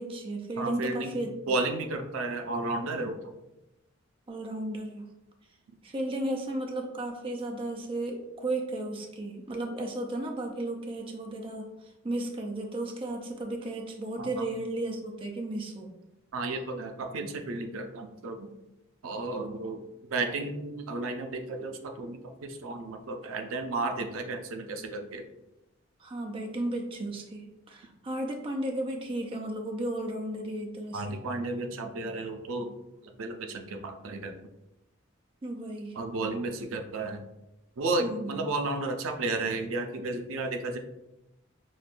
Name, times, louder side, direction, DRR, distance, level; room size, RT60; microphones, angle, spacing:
voice 1, 0.0-1.3 4.3-5.1 5.8-11.7 12.0-15.9 26.0-31.2 35.4-36.0 38.0-38.5, right 1 dB, 25° right, 2 dB, 0.4 m, -34 dB
voice 2, 0.6-1.2 1.5-3.2 14.2-14.5 16.3-18.5 19.0-19.8 20.1-25.2 30.9-32.7 33.2-34.4 36.0-37.2 37.8-40.8, right 2 dB, 90° right, 5 dB, 0.5 m, -33 dB
5.8 x 2.2 x 2.5 m, 0.93 s
head